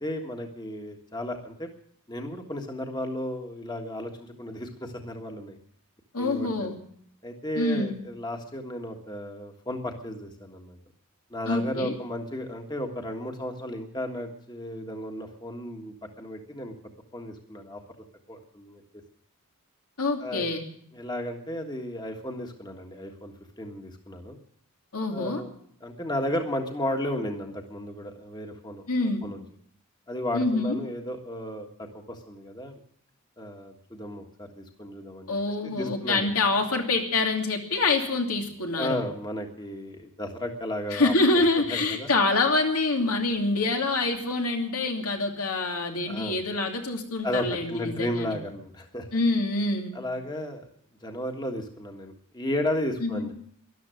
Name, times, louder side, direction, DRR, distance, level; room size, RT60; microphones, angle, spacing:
voice 1, 0.0-1.7 2.1-5.6 6.2-6.7 7.2-10.8 11.3-16.7 17.1-17.8 18.3-18.8 20.2-20.5 20.9-24.4 25.1-25.5 25.8-29.4 30.1-32.8 33.4-35.4 35.6-36.3 38.8-41.1 41.5-42.1 46.0-46.4 47.2-49.1 49.9-50.7 51.0-53.3, left 1 dB, 20° left, 3 dB, 1.6 m, -34 dB
voice 2, 6.1-6.8 7.6-8.0 11.5-11.9 20.0-20.6 24.9-25.4 28.9-29.2 30.3-30.8 35.3-39.0 40.9-48.3 49.1-49.9 53.0-53.3, left 3 dB, 85° left, 2 dB, 2.7 m, -26 dB
13.5 x 12.0 x 9.1 m, 0.65 s
head